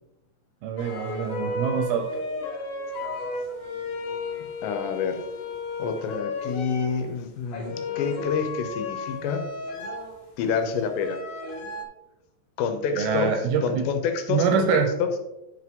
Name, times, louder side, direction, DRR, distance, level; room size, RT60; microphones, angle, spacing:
voice 1, 0.6-2.2 12.9-13.9 14.3-14.9, right 6 dB, 75° right, 4 dB, 2.4 m, -25 dB
sound 1, 0.8-7.0 7.5-10.3 10.9-11.8, left 2 dB, 60° left, 2.3 m, -33 dB
voice 2, 4.6-5.2 5.8-9.4 10.4-11.2 12.6-15.1, left 6 dB, 80° left, 6 dB, 3.1 m, -28 dB
10.0 x 6.0 x 3.8 m, 0.95 s
omnidirectional pair, 5.1 m